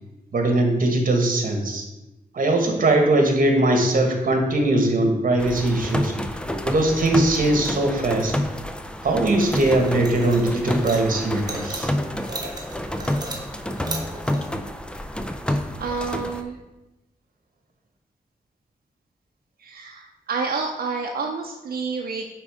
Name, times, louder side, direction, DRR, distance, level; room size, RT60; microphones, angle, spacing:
voice 1, 0.3-1.8 2.3-6.1 6.6-8.3 9.0-11.9, right 2 dB, 60° right, 3 dB, 1.5 m, -20 dB
sound 1, 5.4-16.4, left 1 dB, 5° left, 0.4 m, -29 dB
sound 2, 9.4-14.5, right 1 dB, 25° right, 1.3 m, -36 dB
voice 2, 15.8-16.6 19.6-22.3, right 4 dB, 85° right, 1 dB, 0.6 m, -29 dB
9.2 x 3.7 x 4.9 m, 1.0 s
wide cardioid pair, 135°, 15 cm